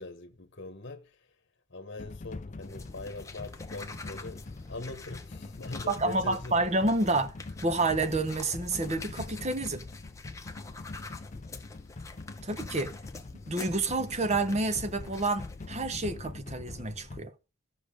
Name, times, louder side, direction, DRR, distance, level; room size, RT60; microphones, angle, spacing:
voice 1, 0.0-1.3 1.7-6.7, left 2 dB, 50° left, 1.1 m, -42 dB
sound 1, 2.0-17.2, left 3 dB, 35° left, 0.5 m, -43 dB
sound 2, 2.6-15.7, left 3 dB, 15° left, 0.9 m, -47 dB
voice 2, 5.9-7.4 7.6-9.8 12.4-12.9 13.5-17.3, right 2 dB, 30° right, 1.0 m, -29 dB
13.5 x 6.4 x 4.9 m
head